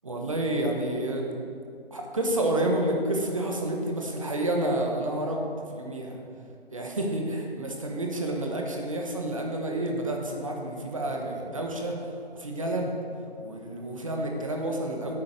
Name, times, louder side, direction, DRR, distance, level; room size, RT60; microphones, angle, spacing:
voice 1, 0.0-1.3 1.9-6.2 6.7-12.0 12.3-12.9 13.4-15.2, right 1 dB, 30° right, 1 dB, 1.1 m, -29 dB
10.5 x 8.8 x 5.1 m, 2.4 s
figure-of-eight pair, 170°, 32 cm